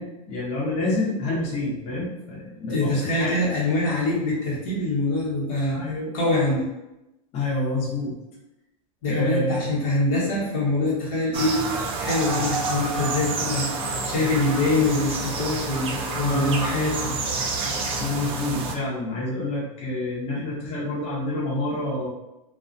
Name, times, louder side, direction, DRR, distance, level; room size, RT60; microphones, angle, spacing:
voice 1, 0.0-3.3 5.7-6.1 7.3-8.1 9.1-9.7 16.2-16.7 18.0-22.1, left 2 dB, 35° left, -6 dB, 1.0 m, -28 dB
voice 2, 2.7-5.8 6.1-6.6 9.0-11.6 12.0-17.1, left 2 dB, 70° left, -6 dB, 1.1 m, -24 dB
sound 1, 11.3-18.8, right 3 dB, 30° right, 0.4 m, -28 dB
2.3 x 2.2 x 2.5 m, 0.94 s
supercardioid pair, 120°, 17 cm